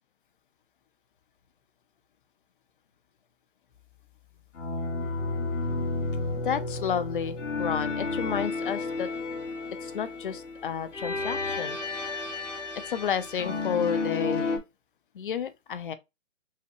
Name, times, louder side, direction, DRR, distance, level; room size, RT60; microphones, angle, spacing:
sound 1, 4.5-14.6, left 3 dB, 80° left, 1.7 m, -32 dB
voice 1, 6.3-9.1 9.8-11.8 12.9-14.6 15.1-15.9, left 8 dB, 45° left, 0.6 m, -31 dB
5.6 x 2.2 x 2.9 m
hypercardioid pair, 155°, 36 cm